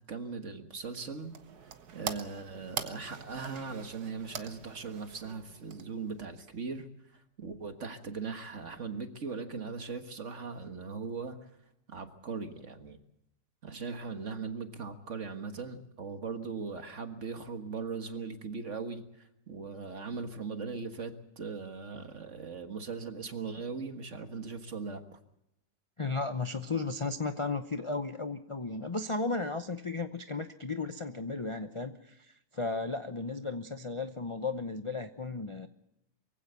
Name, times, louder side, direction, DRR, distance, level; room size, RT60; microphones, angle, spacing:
voice 1, 0.1-1.3 1.9-6.9 7.1-11.5 11.9-13.0 13.6-25.2, right 5 dB, 45° right, 7 dB, 1.8 m, -39 dB
sound 1, 0.9-6.2, right 7 dB, 65° right, 1.7 m, -43 dB
voice 2, 26.0-32.3 32.5-35.7, left 3 dB, 35° left, 7 dB, 0.5 m, -34 dB
23.0 x 16.0 x 8.1 m, 0.82 s
omnidirectional pair, 1.9 m